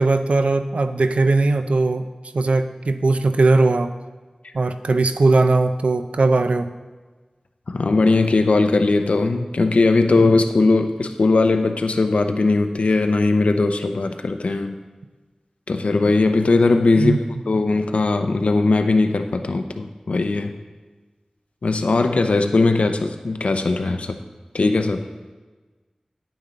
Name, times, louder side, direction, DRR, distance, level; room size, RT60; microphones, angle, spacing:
voice 1, 0.0-2.1 2.3-3.9 4.5-6.7 17.0-17.2, right 3 dB, 90° right, 10 dB, 0.5 m, -19 dB
voice 2, 7.7-14.8 15.7-17.2 17.5-20.5 21.6-24.2 24.5-25.0, left 3 dB, 85° left, 6 dB, 0.6 m, -19 dB
9.6 x 8.8 x 4.0 m, 1.3 s
wide cardioid pair, 65°, 2 cm